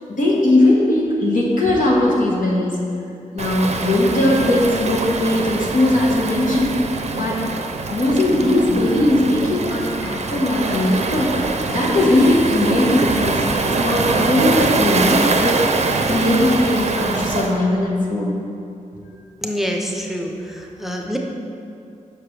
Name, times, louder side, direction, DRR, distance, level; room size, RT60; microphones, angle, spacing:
voice 1, 0.1-2.8 3.3-7.4 7.9-15.6 16.1-18.4, left 1 dB, 75° left, -3 dB, 1.2 m, -19 dB
Waves surf, 3.4-17.5, right 3 dB, 55° right, 0.5 m, -23 dB
voice 2, 19.4-21.2, equal, ahead, 1 dB, 0.6 m, -26 dB
6.7 x 5.6 x 3.3 m, 2.5 s
cardioid pair, 70°, 14 cm